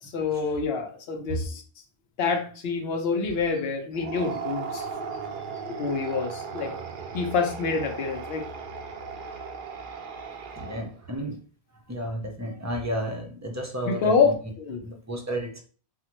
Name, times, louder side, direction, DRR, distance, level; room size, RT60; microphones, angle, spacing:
voice 1, 0.0-1.6 2.2-4.9 5.6-6.7 7.1-8.5 13.9-14.8, left 5 dB, 75° left, 4 dB, 0.9 m, -27 dB
sound 1, 3.9-11.1, right 5 dB, 60° right, 0.7 m, -37 dB
voice 2, 10.5-11.4 11.9-14.4 14.8-15.6, equal, 20° right, 2 dB, 0.5 m, -32 dB
3.7 x 2.1 x 2.9 m, 0.40 s
omnidirectional pair, 1.0 m